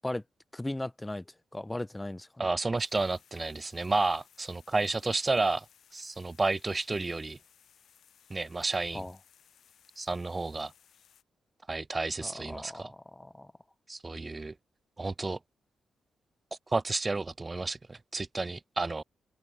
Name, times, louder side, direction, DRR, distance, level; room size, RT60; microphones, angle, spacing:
voice 1, 0.5-1.2 1.5-2.5 8.9-9.2 12.2-13.5, left 1 dB, 15° left, 0.6 m, -37 dB
voice 2, 2.4-5.7 5.9-7.4 8.3-9.0 10.0-10.7 11.7-12.9 13.9-14.5 15.0-15.4 16.7-19.0, right 3 dB, 30° right, 0.4 m, -31 dB
sound 1, 2.8-11.2, left 9 dB, 75° left, 2.9 m, -62 dB
open air
supercardioid pair, 55°, 0 cm